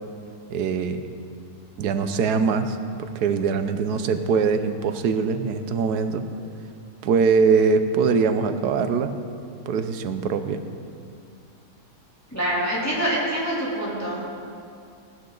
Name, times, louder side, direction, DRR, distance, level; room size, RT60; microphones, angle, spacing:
voice 1, 0.5-1.1 1.8-6.3 7.0-9.1 9.7-10.6, right 5 dB, 85° right, 9 dB, 1.4 m, -22 dB
voice 2, 12.3-14.3, right 1 dB, 10° left, -7 dB, 2.9 m, -25 dB
19.0 x 12.0 x 3.9 m, 2.4 s
omnidirectional pair, 1.7 m